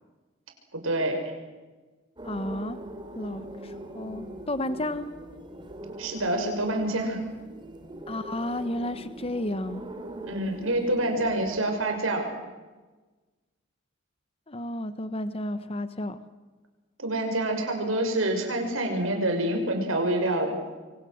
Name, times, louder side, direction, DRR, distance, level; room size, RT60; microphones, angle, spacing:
voice 1, 0.7-1.2 6.0-7.2 10.2-12.3 17.0-20.6, right 1 dB, 80° right, 4 dB, 6.2 m, -27 dB
voice 2, 2.2-2.8 3.1-5.1 8.1-9.8 14.5-16.2, left 1 dB, 30° left, 12 dB, 1.0 m, -32 dB
sound 1, 2.2-11.6, right 1 dB, 25° right, 2.9 m, -42 dB
27.5 x 24.0 x 7.8 m, 1.3 s
head